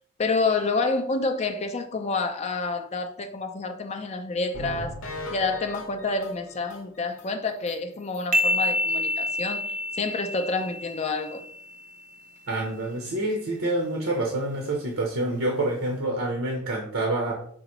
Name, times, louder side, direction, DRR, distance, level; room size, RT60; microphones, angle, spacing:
voice 1, 0.2-5.0 5.3-9.7 10.0-11.4, left 3 dB, 30° left, 0.4 m, -28 dB
sound 1, 4.5-7.3 7.7-7.8 8.1-8.2 8.6-8.7, left 1 dB, 65° left, 0.7 m, -38 dB
sound 2, 8.3-11.9, left 1 dB, 40° right, 0.5 m, -28 dB
voice 2, 12.5-17.3, right 2 dB, 75° right, 0.8 m, -27 dB
4.3 x 3.8 x 3.0 m
head